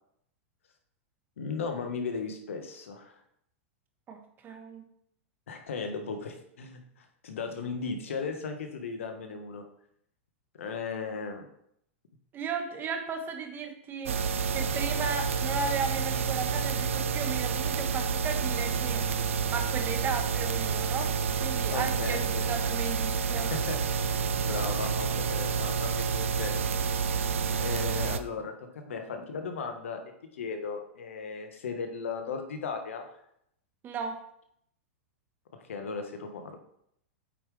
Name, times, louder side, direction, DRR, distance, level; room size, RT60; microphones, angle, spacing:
voice 1, 1.4-3.1 5.5-9.6 10.6-11.4 21.7-22.4 23.3-24.0 24.4-26.6 27.6-30.0 30.4-33.1 35.7-36.6, left 5 dB, 85° left, 5 dB, 1.3 m, -36 dB
voice 2, 4.1-4.8 12.3-19.0 19.5-21.1 21.4-23.5 33.8-34.2, right 5 dB, 30° right, 5 dB, 1.2 m, -35 dB
sound 1, 14.1-28.2, right 5 dB, 90° right, 0.5 m, -29 dB
8.5 x 5.2 x 3.3 m, 0.72 s
hypercardioid pair, 125°, 7 cm